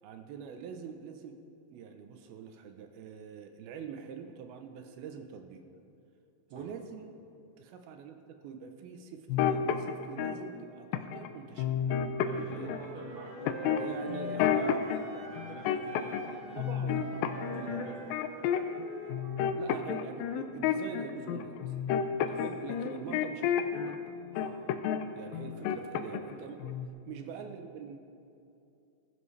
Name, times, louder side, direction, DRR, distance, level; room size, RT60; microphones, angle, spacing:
voice 1, 0.0-1.4 1.7-5.6 6.5-7.1 7.6-11.7 12.3-12.8 13.8-14.8 15.1-15.3 16.6-18.0 19.6-21.9 22.3-23.9 25.1-26.8 27.1-28.0, right 6 dB, 85° right, 6 dB, 2.8 m, -44 dB
sound 1, 9.3-10.4 10.9-11.3 11.6-12.9 13.5-15.0 15.4-16.3 16.6-18.8 19.1-24.0 24.4-25.0 25.3-26.4 26.6-26.9, left 9 dB, 80° left, 2.3 m, -30 dB
Wind instrument woodwind instrument, 12.1-15.6 15.9-19.7, right 1 dB, 50° right, 0.9 m, -44 dB
voice 2, 12.2-16.9 17.4-17.9 22.0-22.4 24.3-24.6 25.5-26.1, left 1 dB, 35° left, -6 dB, 0.8 m, -48 dB
Wind instrument woodwind instrument 2, 13.3-19.4, left 1 dB, 65° left, 2.2 m, -54 dB
20.5 x 12.5 x 3.3 m, 2.6 s
omnidirectional pair, 4.3 m